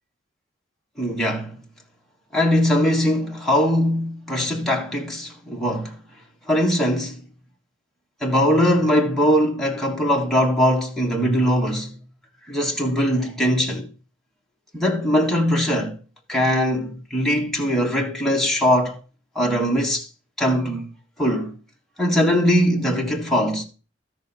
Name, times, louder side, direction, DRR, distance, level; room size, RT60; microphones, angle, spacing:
voice 1, 1.0-1.6 2.3-6.0 6.5-7.2 8.2-11.9 12.5-13.9 14.7-16.0 16.3-19.0 19.3-20.0 20.4-20.9 21.2-21.5 22.0-23.6, equal, ahead, 1.5 m, -21 dB
13.0 x 6.2 x 4.2 m
head